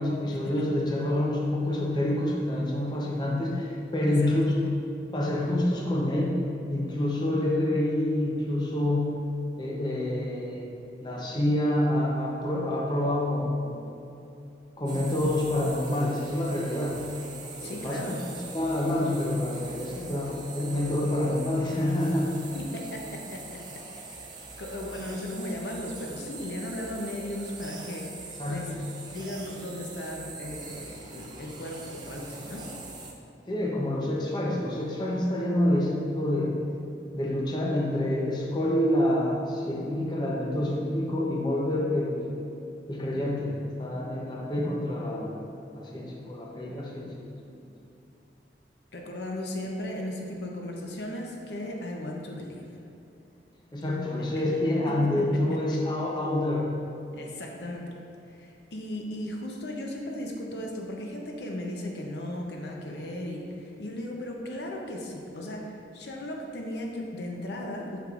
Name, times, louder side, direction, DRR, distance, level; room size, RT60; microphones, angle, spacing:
voice 1, 0.0-4.4 5.1-6.4 6.7-9.2 9.6-10.7 11.0-13.7 14.8-17.0 17.6-22.5 28.4-28.7 33.5-36.5 37.1-42.3 42.9-45.3 45.7-47.1 53.7-56.7, left 1 dB, 25° left, -3 dB, 0.7 m, -27 dB
sound 1, 14.9-33.1, right 3 dB, 25° right, 0.5 m, -43 dB
voice 2, 17.6-18.1 22.5-23.8 24.6-32.7 48.9-52.6 55.2-55.4 57.1-58.0 58.3-68.0, left 1 dB, 70° left, 0 dB, 0.7 m, -36 dB
6.7 x 6.4 x 2.5 m, 2.7 s
head